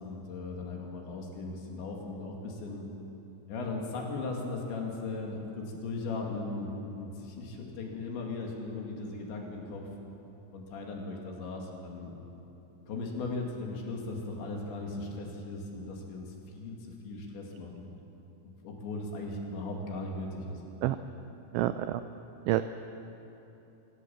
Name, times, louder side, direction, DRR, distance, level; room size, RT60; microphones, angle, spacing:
voice 1, 0.0-2.9 3.5-9.9 10.5-12.1 12.9-16.8 17.0-17.9 18.4-20.6, left 3 dB, 65° left, 0 dB, 4.5 m, -38 dB
voice 2, 21.5-22.0 22.5-22.6, right 15 dB, 85° right, 10 dB, 2.6 m, -27 dB
25.5 x 17.5 x 7.2 m, 2.9 s
omnidirectional pair, 5.9 m